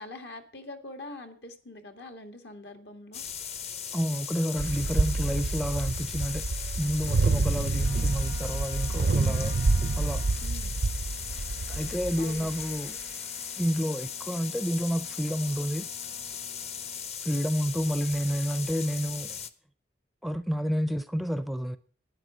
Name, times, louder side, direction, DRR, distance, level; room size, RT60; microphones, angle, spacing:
voice 1, 0.0-3.3 10.4-10.8 12.2-12.5, left 2 dB, 70° left, 1.8 m, -44 dB
sound 1, 3.1-19.5, left 7 dB, 35° left, 0.7 m, -38 dB
voice 2, 3.9-6.4 6.8-9.6 10.0-10.2 11.7-13.0 13.6-15.9 17.2-19.4 20.2-21.8, equal, ahead, 0.5 m, -30 dB
sound 2, 4.6-12.7, right 3 dB, 65° right, 0.5 m, -28 dB
Trumpet, 7.7-17.0, left 3 dB, 55° left, 4.2 m, -52 dB
12.5 x 10.0 x 4.9 m
head